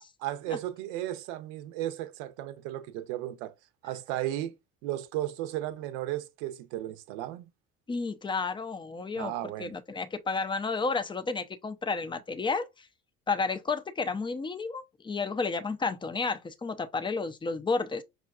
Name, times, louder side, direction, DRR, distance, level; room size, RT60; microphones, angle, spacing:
voice 1, 0.2-3.5 3.8-4.5 4.8-7.5 9.2-9.8, right 13 dB, 65° right, 0.7 m, -35 dB
voice 2, 7.9-9.3 9.6-12.9 13.3-18.0, left 4 dB, 15° left, 0.5 m, -31 dB
5.7 x 2.4 x 2.4 m
hypercardioid pair, 65°, 38 cm